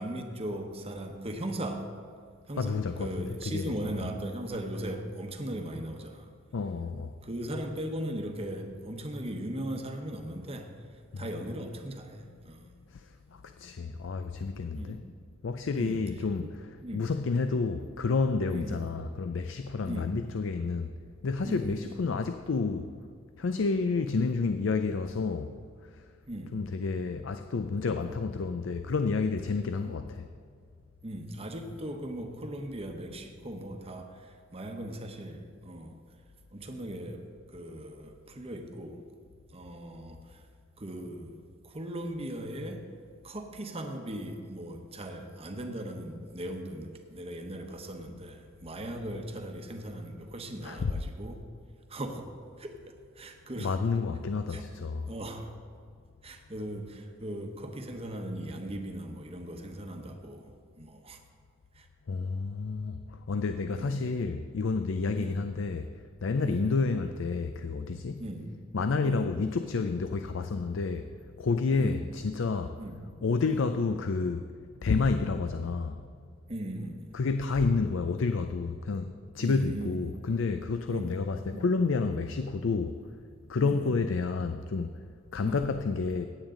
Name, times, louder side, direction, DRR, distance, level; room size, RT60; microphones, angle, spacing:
voice 1, 0.0-1.9 2.5-6.3 7.2-10.7 11.2-12.7 14.8-15.0 15.8-16.0 16.4-16.5 16.8-17.1 18.5-19.0 19.9-20.1 21.4-21.9 26.3-26.5 28.0-28.2 29.8-30.0 31.0-36.0 36.5-39.1 39.5-40.4 40.8-42.8 43.2-51.4 51.9-52.3 52.6-52.7 53.2-53.8 54.5-54.6 55.1-55.5 56.2-61.2 61.7-61.9 63.7-64.0 65.2-65.4 66.4-66.7 68.2-68.5 69.0-69.3 71.8-72.0 72.8-73.0 73.5-73.7 76.5-77.1 79.4-80.4 80.9-81.2 81.5-81.6 83.6-83.9 85.4-85.6, right 1 dB, 30° right, 4 dB, 1.0 m, -38 dB
voice 2, 2.6-4.1 6.5-7.1 11.1-11.3 12.9-15.0 15.4-20.9 21.2-22.9 23.4-25.5 26.5-30.3 50.6-50.9 53.6-55.1 62.1-65.9 66.2-68.2 68.7-71.1 71.4-72.8 73.2-74.4 74.8-76.0 77.1-83.2 83.5-84.9 85.3-86.3, left 4 dB, 65° left, 8 dB, 0.5 m, -30 dB
16.0 x 9.0 x 3.8 m, 2.2 s
head